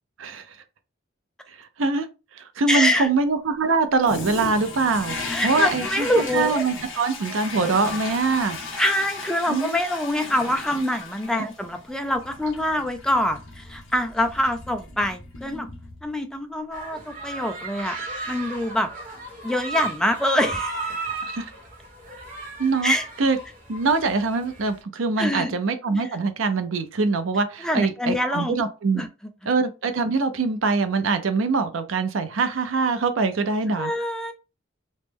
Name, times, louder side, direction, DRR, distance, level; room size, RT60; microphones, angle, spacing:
voice 1, 1.6-2.1 2.4-8.6 9.5-9.7 11.4-11.5 21.3-21.5 22.6-22.9 23.2-23.4 23.7-29.0 29.5-33.9, right 4 dB, 75° right, 0.5 m, -23 dB
voice 2, 2.7-3.1 5.3-6.6 8.8-15.7 16.0-18.0 18.3-18.9 19.4-20.8 22.8-23.1 25.2-25.5 26.0-26.1 27.6-28.6 28.9-29.1 33.7-34.3, left 1 dB, 5° left, 0.4 m, -25 dB
Toilet flush, 4.0-16.4, left 3 dB, 75° left, 0.8 m, -36 dB
sound 1, 16.7-24.8, right 3 dB, 40° right, 0.9 m, -34 dB
3.1 x 2.1 x 3.4 m
head